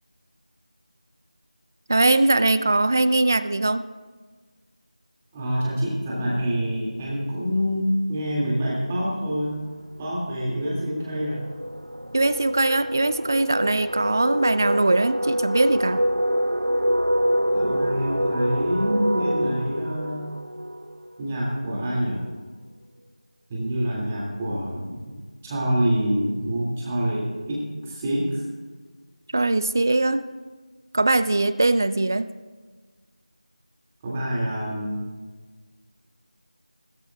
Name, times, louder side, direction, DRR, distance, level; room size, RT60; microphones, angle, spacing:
voice 1, 1.9-3.9 12.1-16.0 29.3-30.2 30.9-32.3, right 2 dB, 25° right, 13 dB, 0.3 m, -21 dB
voice 2, 5.3-9.6 10.0-11.4 17.5-20.3 21.2-22.2 23.5-25.0 25.4-28.4 34.0-35.1, equal, 10° right, -5 dB, 2.1 m, -26 dB
sound 1, 9.4-9.7 10.0-21.5, equal, 85° right, 1.1 m, -26 dB
20.5 x 13.5 x 2.3 m, 1.4 s
figure-of-eight pair, 170°, 4 cm